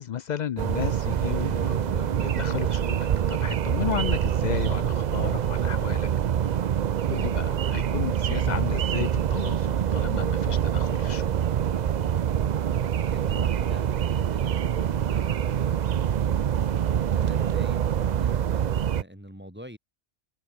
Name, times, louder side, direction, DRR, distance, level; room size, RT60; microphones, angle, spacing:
voice 1, 0.0-6.1 7.0-11.3, left 9 dB, 60° left, 0.5 m, -33 dB
sound 1, 0.6-19.0, right 9 dB, 50° right, 0.5 m, -25 dB
voice 2, 13.0-15.8 17.0-19.8, equal, 10° right, 3.9 m, -45 dB
open air
omnidirectional pair, 1.2 m